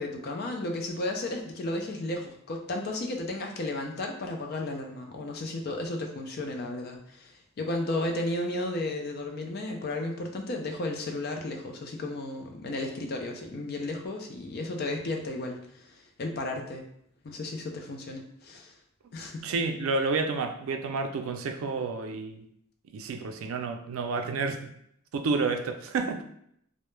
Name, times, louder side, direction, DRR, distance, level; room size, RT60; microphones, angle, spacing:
voice 1, 0.0-16.9 17.2-18.7 19.1-19.5, left 2 dB, 50° left, 2 dB, 0.4 m, -34 dB
voice 2, 19.4-22.4 22.9-24.7 25.1-26.2, right 4 dB, 85° right, 6 dB, 0.3 m, -30 dB
2.1 x 2.0 x 3.1 m, 0.71 s
head